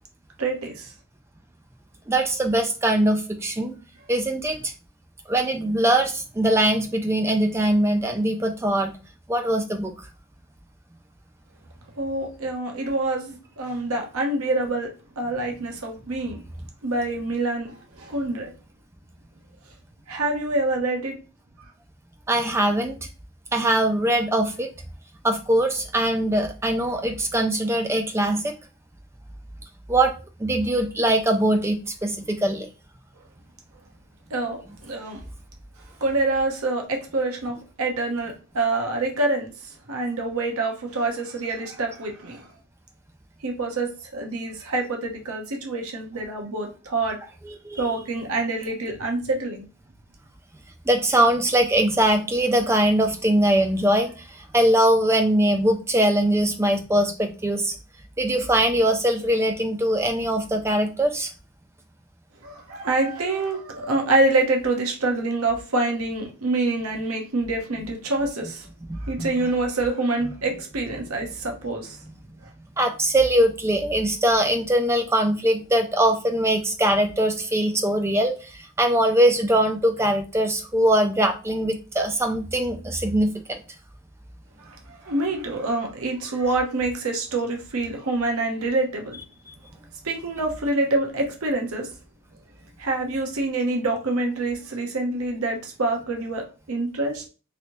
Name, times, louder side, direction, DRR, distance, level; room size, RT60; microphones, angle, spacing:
voice 1, 0.4-0.9 12.0-14.9 15.2-16.4 16.8-18.5 20.1-21.2 21.6-21.7 34.3-35.2 36.0-42.5 43.4-47.2 47.8-49.7 62.4-68.7 69.0-72.0 84.6-89.2 90.0-91.9 92.8-97.3, right 2 dB, 80° right, 2 dB, 0.8 m, -26 dB
voice 2, 2.1-3.7 4.1-4.7 5.3-8.9 9.3-9.9 22.3-23.1 23.5-24.7 25.2-28.5 29.9-30.1 30.4-32.7 47.4-48.0 50.9-57.7 58.2-61.3 68.9-69.5 70.2-70.3 72.8-83.6, right 1 dB, 10° right, 6 dB, 0.3 m, -22 dB
3.1 x 2.7 x 2.9 m, 0.33 s
head